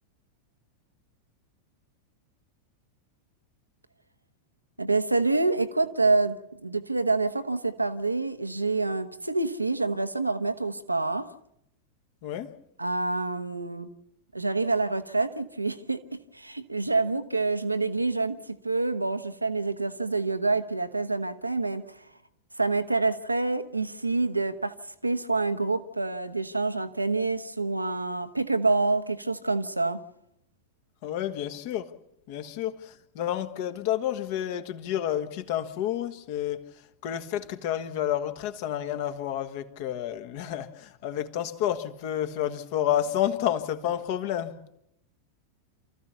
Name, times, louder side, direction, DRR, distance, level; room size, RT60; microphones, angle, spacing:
voice 1, 4.8-6.4 6.6-11.3 12.8-13.9 14.3-22.0 22.6-24.7 25.0-30.0, right 3 dB, 85° right, 1.2 m, -27 dB
voice 2, 12.2-12.5 31.0-31.9 32.3-36.7 37.0-44.6, left 11 dB, 50° left, 1.5 m, -30 dB
28.0 x 14.5 x 6.9 m
figure-of-eight pair, 90°, 0 cm